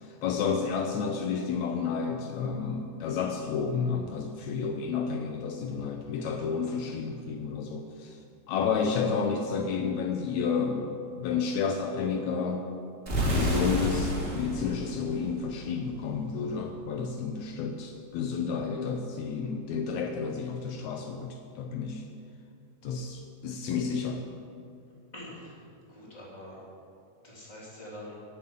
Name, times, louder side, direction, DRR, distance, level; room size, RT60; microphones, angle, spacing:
voice 1, 0.1-8.2 8.5-12.7 13.3-22.0 22.8-24.2, left 5 dB, 75° left, 4 dB, 2.0 m, -31 dB
sound 1, 13.1-15.9, equal, 20° right, 3.2 m, -30 dB
voice 2, 25.1-25.5 25.9-26.6 27.2-28.2, left 1 dB, 15° left, -6 dB, 3.3 m, -44 dB
12.0 x 7.3 x 9.3 m, 2.4 s
omnidirectional pair, 3.4 m